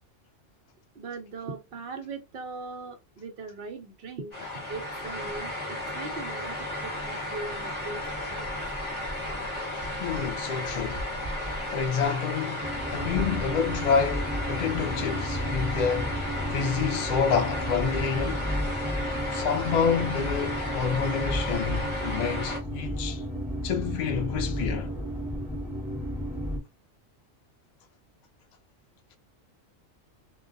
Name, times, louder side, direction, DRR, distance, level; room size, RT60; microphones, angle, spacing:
voice 1, 0.9-4.3 4.7-8.5, right 3 dB, 60° right, 0.7 m, -40 dB
sound 1, 4.3-22.6, left 1 dB, 25° left, 1.1 m, -34 dB
voice 2, 10.0-11.1 11.7-12.7 12.9-16.1 16.5-18.5 19.3-23.2 23.6-24.9, left 6 dB, 60° left, 0.4 m, -28 dB
sound 2, 12.6-26.6, equal, 5° right, 0.4 m, -32 dB
2.3 x 2.2 x 2.5 m
omnidirectional pair, 1.3 m